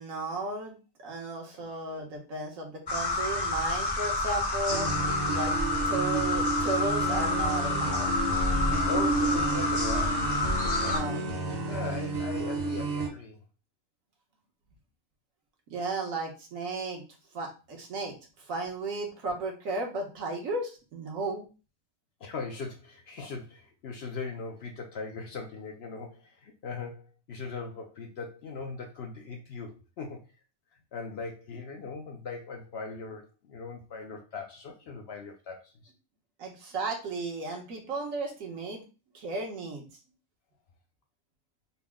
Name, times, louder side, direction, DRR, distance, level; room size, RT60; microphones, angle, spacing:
voice 1, 0.0-4.9 5.3-5.5 5.9-8.1 10.9-11.2 15.7-17.0 17.3-18.1 18.5-21.5 36.4-38.8 39.1-39.9, right 3 dB, 80° right, 0 dB, 1.3 m, -34 dB
sound 1, 2.9-11.0, left 2 dB, 40° left, 0.3 m, -29 dB
sound 2, 4.7-13.1, right 2 dB, 55° right, 1.0 m, -31 dB
voice 2, 8.9-10.3 10.8-11.4 11.7-13.4 22.2-30.2 30.9-35.9, left 4 dB, 65° left, 3 dB, 0.7 m, -39 dB
4.1 x 2.0 x 3.4 m, 0.33 s
omnidirectional pair, 1.4 m